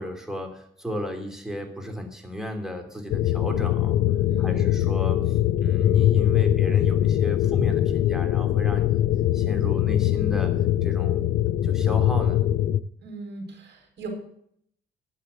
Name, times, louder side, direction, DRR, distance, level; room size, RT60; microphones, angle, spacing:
voice 1, 0.0-4.0 4.4-9.0 9.3-10.5 10.8-11.2 11.6-12.4, equal, ahead, 4 dB, 3.0 m, -34 dB
sound 1, 3.1-12.8, left 12 dB, 75° left, 0.5 m, -22 dB
voice 2, 4.2-4.7 13.0-14.1, right 3 dB, 60° right, 2 dB, 6.1 m, -38 dB
11.0 x 7.5 x 8.2 m, 0.66 s
cardioid pair, 90°, 20 cm